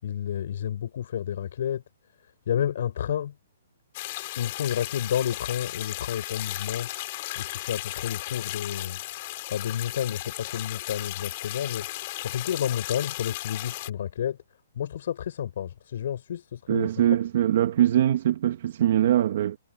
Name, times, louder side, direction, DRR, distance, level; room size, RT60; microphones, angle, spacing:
voice 1, 0.0-1.8 2.5-3.3 4.4-7.1 7.4-9.0 9.5-14.4 14.7-16.9, left 9 dB, 60° left, 5.4 m, -30 dB
sound 1, 3.9-13.9, left 18 dB, 40° left, 4.6 m, -35 dB
voice 2, 16.7-19.6, right 11 dB, 50° right, 1.6 m, -22 dB
hypercardioid pair, 160°, 0 cm